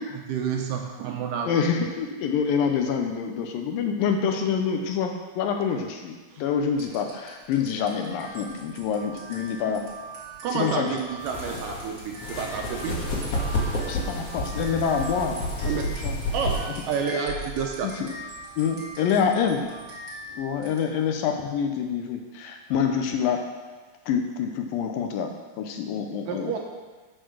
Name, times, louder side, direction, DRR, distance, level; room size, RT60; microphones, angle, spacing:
voice 1, 0.3-1.5 6.3-6.4 10.4-13.0 15.7-15.9 16.3-17.9 26.3-26.6, right 6 dB, 75° right, 2 dB, 2.2 m, -29 dB
voice 2, 1.5-9.8 10.5-11.0 13.9-15.4 16.0-16.2 17.8-18.1 18.6-19.6 20.4-23.4 24.1-25.3 25.6-26.6, left 7 dB, 80° left, 4 dB, 2.4 m, -26 dB
sound 1, 6.7-21.2, right 2 dB, 30° right, 2.8 m, -42 dB
sound 2, 11.2-17.0, left 1 dB, 50° left, 2.4 m, -30 dB
9.3 x 6.6 x 6.2 m, 1.3 s
omnidirectional pair, 4.3 m